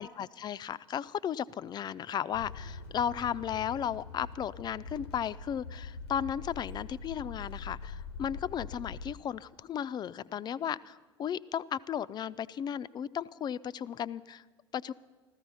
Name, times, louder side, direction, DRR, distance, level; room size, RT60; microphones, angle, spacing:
voice 1, 0.0-14.4 14.7-14.9, left 9 dB, 30° left, 16 dB, 0.5 m, -35 dB
sound 1, 2.3-9.1, left 4 dB, 75° left, 0.7 m, -43 dB
15.0 x 14.0 x 5.5 m, 1.3 s
figure-of-eight pair, 65°, 13 cm